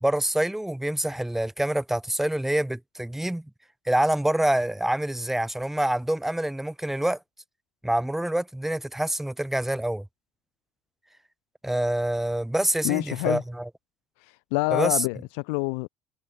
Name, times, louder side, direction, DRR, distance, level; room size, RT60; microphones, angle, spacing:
voice 1, 0.0-3.4 3.9-7.2 7.8-10.0 11.6-13.4 14.7-15.0, right 1 dB, 5° right, 1.3 m, -26 dB
voice 2, 12.8-13.4 14.2-15.9, left 36 dB, 60° left, 0.6 m, -27 dB
figure-of-eight pair, 65°, 8 cm